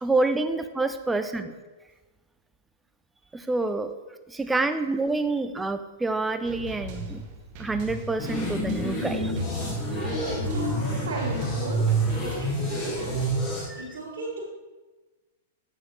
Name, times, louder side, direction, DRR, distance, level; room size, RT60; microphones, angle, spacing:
voice 1, 0.0-1.5 3.3-3.9 4.3-7.2 7.6-9.3 13.7-13.8, right 3 dB, 10° right, 9 dB, 0.5 m, -27 dB
voice 2, 1.1-1.5 3.8-3.9 5.3-5.4 6.3-6.4 9.0-13.3 13.7-14.4, right 2 dB, 80° right, -6 dB, 2.0 m, -36 dB
sound 1, 6.5-13.7, right 1 dB, 45° right, 1.2 m, -39 dB
sound 2, 8.2-13.7, right 1 dB, 30° left, 2.0 m, -28 dB
8.4 x 6.2 x 3.2 m, 1.2 s
hypercardioid pair, 125°, 0 cm